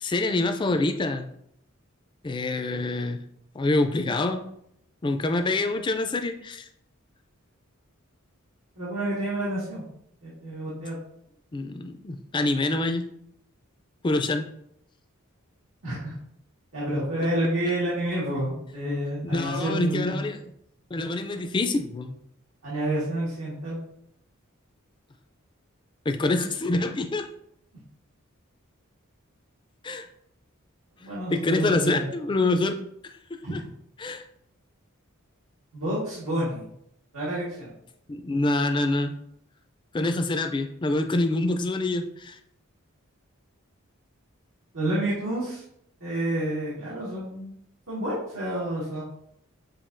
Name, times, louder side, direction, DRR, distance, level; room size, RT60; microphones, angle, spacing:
voice 1, 0.0-1.3 2.2-3.2 3.5-4.4 5.0-6.7 11.5-13.0 14.0-14.5 17.2-17.3 19.2-20.4 20.9-22.1 26.1-27.3 29.8-30.1 31.3-32.8 33.0-33.6 34.0-34.2 38.1-39.1 39.9-42.4, left 2 dB, 20° left, 7 dB, 0.3 m, -26 dB
voice 2, 8.8-9.8 10.2-10.9 15.8-16.1 16.7-20.3 22.6-23.8 31.0-32.0 33.4-33.7 35.7-36.6 37.1-37.7 44.7-45.6 46.0-47.5 47.9-49.0, right 1 dB, 90° right, -9 dB, 1.8 m, -29 dB
7.2 x 2.7 x 2.6 m, 0.73 s
head